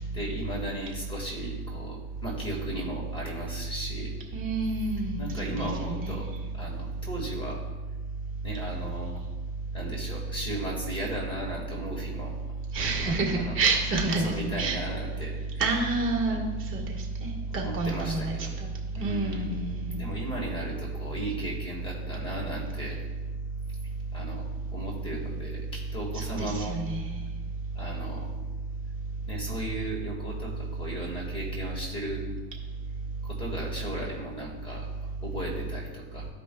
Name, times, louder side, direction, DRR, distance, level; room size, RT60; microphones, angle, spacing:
voice 1, 0.1-4.1 5.2-7.6 8.4-9.2 9.7-12.3 13.0-13.6 14.2-15.4 15.7-15.8 16.2-16.4 17.5-18.5 18.9-19.5 19.9-23.0 24.1-26.8 27.8-28.3 29.3-32.2 33.2-34.9 35.2-36.3, right 1 dB, 15° left, -2 dB, 1.7 m, -36 dB
voice 2, 4.3-6.3 12.7-14.8 15.6-16.4 16.7-16.8 17.2-18.3 19.0-20.0 26.1-27.1, right 3 dB, 40° right, 0 dB, 1.6 m, -28 dB
14.0 x 5.1 x 2.3 m, 1.3 s
cardioid pair, 140°, 32 cm